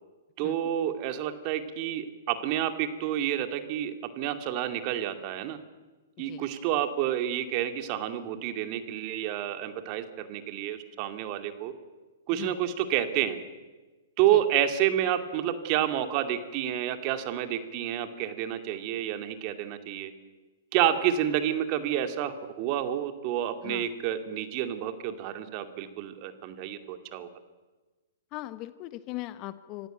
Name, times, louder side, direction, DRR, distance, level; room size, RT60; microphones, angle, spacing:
voice 1, 0.4-5.6 6.2-11.7 12.3-13.4 14.2-20.1 20.7-27.3, right 11 dB, 40° right, 8 dB, 2.4 m, -29 dB
voice 2, 28.3-29.9, left 16 dB, 35° left, 13 dB, 1.2 m, -39 dB
25.5 x 15.0 x 9.2 m, 1.2 s
hypercardioid pair, 120°, 0 cm